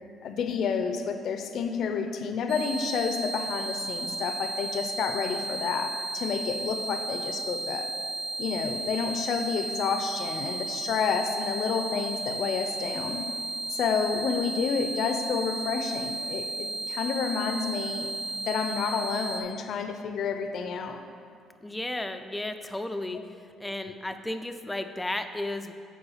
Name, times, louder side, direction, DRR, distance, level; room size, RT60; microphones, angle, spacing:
voice 1, 0.2-7.9 8.4-13.2 13.7-18.1 18.4-21.0, left 6 dB, 65° left, 7 dB, 0.5 m, -30 dB
sound 1, 2.5-19.4, right 2 dB, 80° right, 1.0 m, -34 dB
voice 2, 21.6-23.2 23.6-25.7, left 1 dB, 10° left, 8 dB, 0.4 m, -33 dB
7.0 x 4.8 x 5.6 m, 2.3 s
cardioid pair, 110°, 0 cm